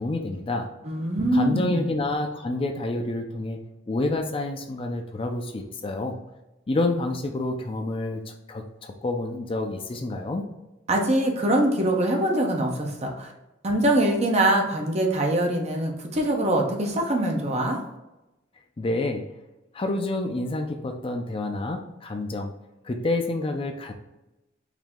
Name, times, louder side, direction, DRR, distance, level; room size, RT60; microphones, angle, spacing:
voice 1, 0.0-0.7 1.3-3.6 3.9-6.2 6.7-10.5 18.8-19.3 19.7-22.5 22.8-23.9, left 2 dB, 30° left, 4 dB, 0.4 m, -28 dB
voice 2, 0.8-1.9 10.9-13.3 13.6-17.8, right 1 dB, 35° right, 1 dB, 0.8 m, -23 dB
4.9 x 2.7 x 3.6 m, 0.97 s
head